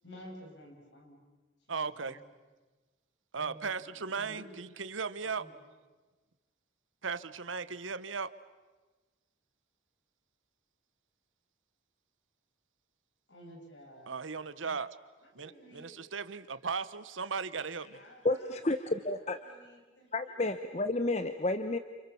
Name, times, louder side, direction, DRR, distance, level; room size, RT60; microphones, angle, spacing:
voice 1, 0.0-1.3 1.7-2.2 3.3-4.6 5.2-5.6 13.3-14.2 15.2-16.4 17.9-18.9 19.2-20.4, equal, 70° left, 1 dB, 7.4 m, -53 dB
voice 2, 1.7-2.2 3.3-5.5 7.0-8.3 14.1-15.0 15.3-18.0, right 5 dB, 90° right, 14 dB, 1.1 m, -37 dB
voice 3, 18.2-19.4 20.1-21.8, left 2 dB, 35° left, 9 dB, 0.9 m, -31 dB
30.0 x 28.0 x 7.1 m, 1.3 s
head